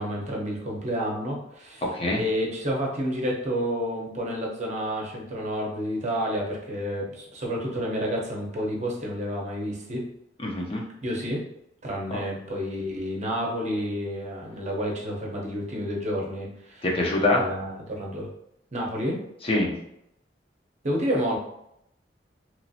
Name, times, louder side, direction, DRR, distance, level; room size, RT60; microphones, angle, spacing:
voice 1, 0.0-1.8 2.1-10.0 11.0-11.4 11.8-16.8 17.3-18.3 18.7-19.2 20.8-21.4, equal, 40° right, -2 dB, 0.7 m, -30 dB
voice 2, 1.8-2.2 10.4-10.8 16.8-17.4 19.4-19.7, left 2 dB, 30° left, -1 dB, 0.6 m, -24 dB
3.0 x 2.5 x 2.7 m, 0.79 s
head